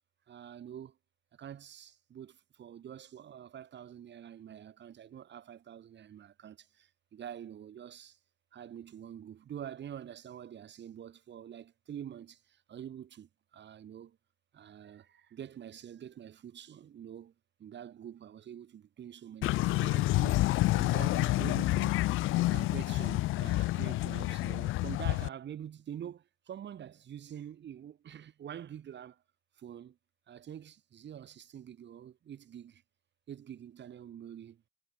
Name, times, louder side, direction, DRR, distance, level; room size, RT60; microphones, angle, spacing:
voice 1, 0.3-1.0 1.3-8.2 8.5-14.2 14.5-17.3 17.6-22.0 22.5-29.2 29.6-30.0 30.3-32.8 33.3-34.6, right 9 dB, 65° right, 7.0 m, -46 dB
sound 1, 19.4-25.3, left 18 dB, 90° left, 0.6 m, -29 dB
cardioid pair, 90°, 20 cm